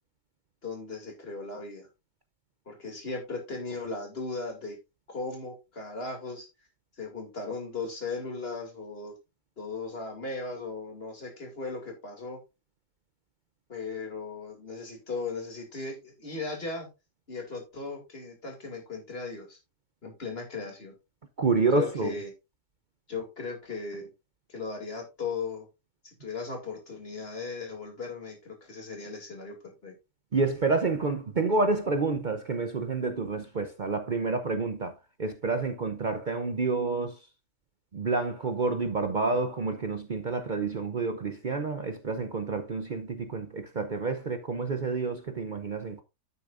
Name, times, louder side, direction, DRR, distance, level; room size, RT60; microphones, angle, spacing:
voice 1, 0.6-1.9 2.7-4.8 5.1-6.5 7.0-9.1 9.6-12.4 13.7-16.9 17.3-19.6 20.0-20.9 21.7-22.3 23.1-24.1 24.5-25.7 26.0-29.5 29.8-29.9, left 4 dB, 50° left, 2.8 m, -37 dB
voice 2, 21.4-22.1 30.3-34.9 35.2-37.1 37.9-46.0, right 3 dB, 45° right, 0.8 m, -29 dB
9.6 x 8.4 x 2.6 m
omnidirectional pair, 1.4 m